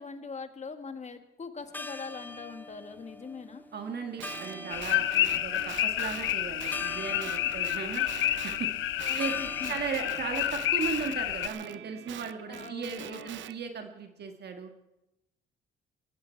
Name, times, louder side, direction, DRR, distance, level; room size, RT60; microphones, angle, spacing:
voice 1, 0.0-3.7 7.4-7.5 9.0-9.7 12.4-13.5, left 5 dB, 35° left, 8 dB, 1.7 m, -42 dB
sound 1, 1.6-10.6, left 2 dB, 10° left, 0.8 m, -44 dB
voice 2, 3.7-8.0 8.4-8.7 9.1-9.3 9.7-14.7, right 5 dB, 55° right, 5 dB, 1.7 m, -36 dB
Guitar, 4.2-8.7 9.0-13.6, right 12 dB, 70° right, 0.6 m, -44 dB
sound 2, 4.7-11.5, left 13 dB, 80° left, 0.7 m, -30 dB
18.0 x 15.0 x 4.6 m, 0.91 s
cardioid pair, 90°, 20 cm